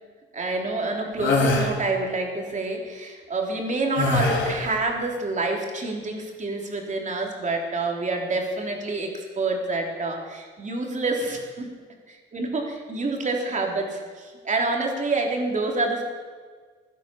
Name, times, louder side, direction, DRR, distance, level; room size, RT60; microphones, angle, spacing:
voice 1, 0.3-11.7 12.3-16.0, right 3 dB, 40° right, 1 dB, 3.5 m, -27 dB
sound 1, 1.2-1.7 4.0-4.7, left 3 dB, 70° left, 3.4 m, -22 dB
16.5 x 11.5 x 7.0 m, 1.5 s
cardioid pair, 90°, 20 cm